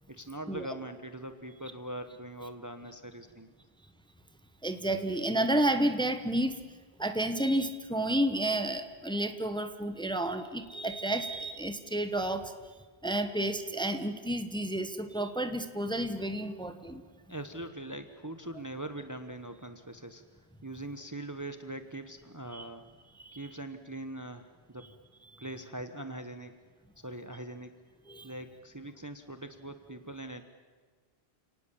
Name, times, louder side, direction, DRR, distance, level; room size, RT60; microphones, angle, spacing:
voice 1, 0.1-3.5 17.3-20.2 20.6-22.8 23.3-24.9 25.4-26.5 27.0-27.7 28.2-30.4, right 1 dB, 15° right, 9 dB, 1.1 m, -42 dB
voice 2, 4.6-6.6 7.0-12.5 13.0-17.0 22.5-22.7 23.2-23.4 28.1-28.3, right 1 dB, 5° left, 9 dB, 1.2 m, -31 dB
30.0 x 18.5 x 7.3 m, 1.4 s
omnidirectional pair, 1.1 m